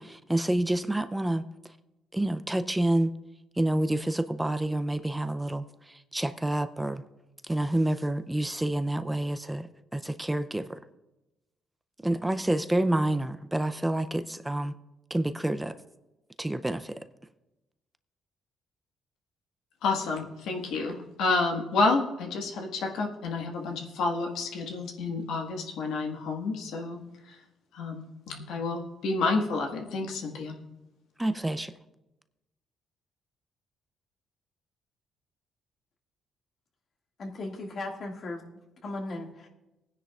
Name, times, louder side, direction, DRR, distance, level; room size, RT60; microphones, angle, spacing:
voice 1, 0.0-1.4 2.1-3.1 3.6-7.0 7.4-10.8 12.0-14.7 15.1-15.7 16.4-17.0 31.2-31.7, right 1 dB, 10° right, 10 dB, 0.4 m, -28 dB
voice 2, 19.8-27.0 27.7-30.5, left 3 dB, 85° left, 2 dB, 1.5 m, -29 dB
voice 3, 37.2-39.5, left 2 dB, 55° left, 1 dB, 1.9 m, -37 dB
20.0 x 10.0 x 2.4 m, 0.99 s
cardioid pair, 90°, 0 cm